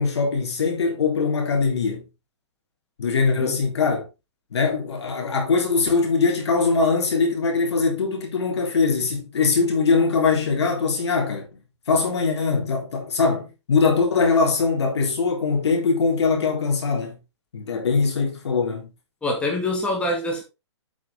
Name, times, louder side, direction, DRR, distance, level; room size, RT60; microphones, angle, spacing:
voice 1, 0.0-2.0 3.0-4.0 4.5-11.5 11.9-17.2 17.5-18.9, left 4 dB, 70° left, 4.0 m, -22 dB
voice 2, 19.2-20.4, left 1 dB, 10° left, 2.2 m, -25 dB
8.5 x 6.2 x 3.9 m
hypercardioid pair, 150°, 15 cm